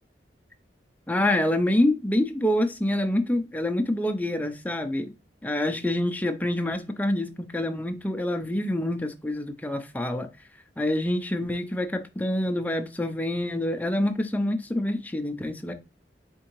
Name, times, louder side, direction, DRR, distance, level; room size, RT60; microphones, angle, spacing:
voice 1, 1.1-5.1 5.4-10.3 10.8-15.7, left 1 dB, 10° left, 0.4 m, -26 dB
4.4 x 3.6 x 3.0 m
head